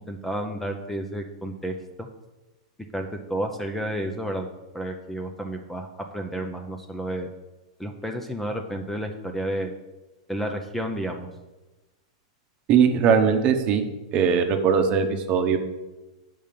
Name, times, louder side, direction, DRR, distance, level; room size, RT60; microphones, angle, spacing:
voice 1, 0.1-1.7 2.0-2.1 2.9-4.5 4.7-5.9 6.1-7.3 7.8-9.7 10.3-11.3, right 1 dB, 5° left, 4 dB, 0.6 m, -31 dB
voice 2, 12.7-13.8 14.1-15.6, right 6 dB, 35° right, 6 dB, 0.9 m, -20 dB
7.3 x 5.5 x 5.2 m, 1.1 s
hypercardioid pair, 140°, 3 cm